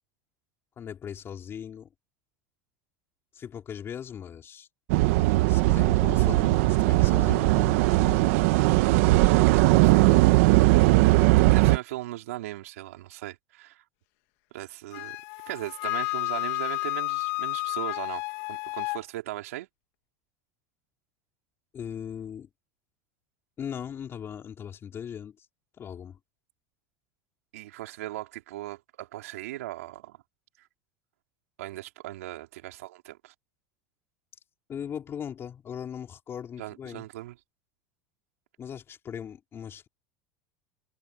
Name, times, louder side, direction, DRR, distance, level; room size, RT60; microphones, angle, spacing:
voice 1, 0.8-1.9 3.3-4.7 5.5-8.2 21.7-22.5 23.6-25.5 25.8-26.2 34.7-37.0 38.6-39.9, left 8 dB, 30° left, 4.7 m, -39 dB
sound 1, 4.9-11.8, right 20 dB, 70° right, 1.2 m, -19 dB
voice 2, 9.5-10.2 11.5-13.8 14.5-15.2 15.5-18.2 18.5-19.7 27.5-30.2 31.6-33.3 36.6-37.3, right 16 dB, 90° right, 4.2 m, -38 dB
Wind instrument woodwind instrument, 14.9-19.0, left 27 dB, 70° left, 1.7 m, -31 dB
supercardioid pair, 115°, 8 cm